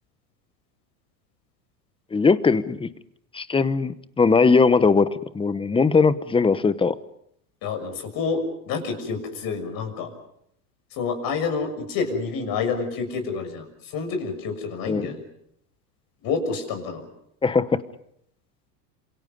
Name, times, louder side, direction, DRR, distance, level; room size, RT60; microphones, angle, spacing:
voice 1, 2.1-2.9 3.3-5.1 5.3-6.9 14.9-15.1 17.4-17.8, left 4 dB, 10° left, 15 dB, 1.0 m, -19 dB
voice 2, 7.6-10.1 11.0-15.2 16.2-17.0, left 4 dB, 45° left, 7 dB, 6.5 m, -28 dB
27.5 x 27.0 x 5.3 m, 0.72 s
supercardioid pair, 120°, 48 cm